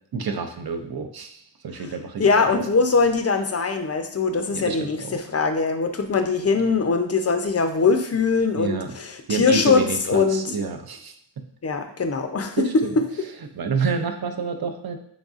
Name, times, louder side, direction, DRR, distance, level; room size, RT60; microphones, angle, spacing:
voice 1, 0.1-2.6 4.5-5.2 8.5-8.9 9.3-11.4 12.6-12.9 13.5-15.0, right 5 dB, 50° right, 6 dB, 0.6 m, -28 dB
voice 2, 2.2-10.5 11.6-13.0, left 4 dB, 35° left, 7 dB, 0.5 m, -22 dB
3.9 x 3.5 x 2.4 m, 0.68 s
cardioid pair, 40°, 46 cm